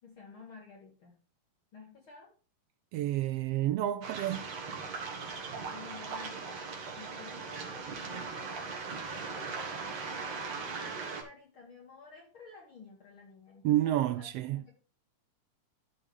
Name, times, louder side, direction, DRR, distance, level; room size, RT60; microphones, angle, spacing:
voice 1, 0.0-1.2 1.7-2.3 5.7-6.7 7.0-14.7, left 4 dB, 45° left, 3.0 m, -52 dB
voice 2, 2.9-4.5 13.6-14.6, right 13 dB, 85° right, 1.4 m, -29 dB
Waves surf, 4.0-11.2, right 4 dB, 60° right, 3.2 m, -39 dB
13.0 x 5.4 x 3.5 m
omnidirectional pair, 3.3 m